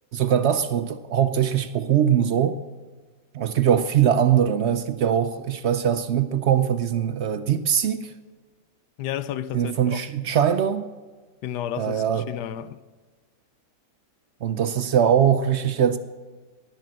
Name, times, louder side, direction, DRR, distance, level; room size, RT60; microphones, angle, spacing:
voice 1, 0.1-2.6 3.3-8.1 9.5-10.9 11.8-12.3 14.4-16.0, right 9 dB, 75° right, 0.6 m, -22 dB
voice 2, 9.0-10.0 11.4-12.8, left 10 dB, 80° left, 1.2 m, -32 dB
18.5 x 6.8 x 7.5 m
omnidirectional pair, 1.8 m